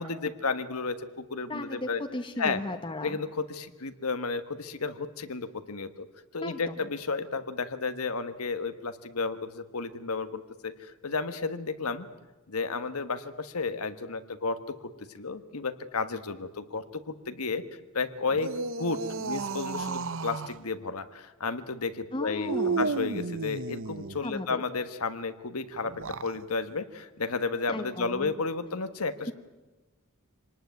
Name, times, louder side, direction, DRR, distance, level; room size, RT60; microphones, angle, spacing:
voice 1, 0.0-2.0 2.4-2.6 3.0-6.1 6.3-12.1 12.5-14.8 15.1-17.6 17.9-18.5 18.8-25.9 26.2-29.3, left 4 dB, 90° left, 10 dB, 1.4 m, -32 dB
voice 2, 1.5-3.2 6.4-6.9 22.1-22.9 24.2-24.6 27.7-28.3, left 1 dB, 25° left, 5 dB, 1.0 m, -35 dB
sound 1, 18.3-20.6 22.5-24.3 25.9-26.4, right 4 dB, 60° right, 0.8 m, -33 dB
25.5 x 19.0 x 9.4 m, 1.2 s
head